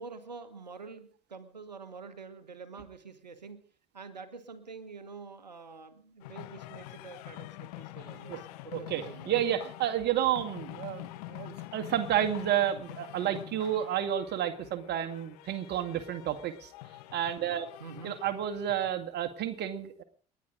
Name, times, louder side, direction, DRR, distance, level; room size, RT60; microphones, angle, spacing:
voice 1, 0.0-3.6 3.9-9.3 17.8-18.2, right 4 dB, 90° right, 12 dB, 1.3 m, -46 dB
sound 1, 6.2-18.9, left 17 dB, 70° left, 1.2 m, -46 dB
voice 2, 8.7-16.7 17.1-17.7 18.0-20.0, right 10 dB, 55° right, 8 dB, 2.1 m, -31 dB
29.5 x 11.0 x 3.9 m, 0.43 s
figure-of-eight pair, 55°, 21 cm